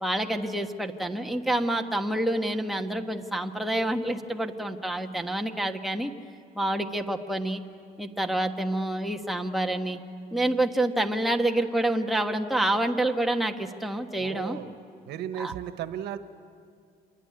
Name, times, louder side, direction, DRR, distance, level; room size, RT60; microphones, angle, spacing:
voice 1, 0.0-6.1 6.5-7.6 8.0-10.0 10.3-14.6 15.4-15.5, right 1 dB, ahead, 3 dB, 1.5 m, -27 dB
voice 2, 14.2-14.7 15.1-16.2, right 10 dB, 80° right, 10 dB, 1.3 m, -35 dB
27.0 x 21.0 x 9.8 m, 2.3 s
cardioid pair, 110°, 17 cm